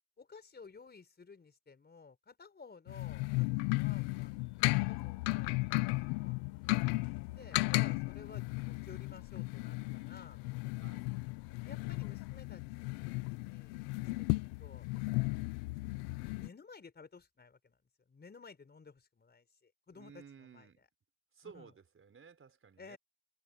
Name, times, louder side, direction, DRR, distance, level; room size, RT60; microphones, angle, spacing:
voice 1, 0.2-4.4 4.7-5.7 6.0-6.4 6.9-10.4 11.6-14.9 16.4-20.9 21.4-21.7 22.8-23.0, left 4 dB, 20° left, 4.9 m, -55 dB
sound 1, 2.9-16.5, left 25 dB, 70° left, 1.2 m, -35 dB
sound 2, 3.7-12.4, left 15 dB, 55° left, 6.0 m, -63 dB
voice 2, 7.3-8.0 10.8-11.1 15.2-15.6 19.9-20.9 21.3-23.0, right 6 dB, 25° right, 5.1 m, -57 dB
supercardioid pair, 95°, 48 cm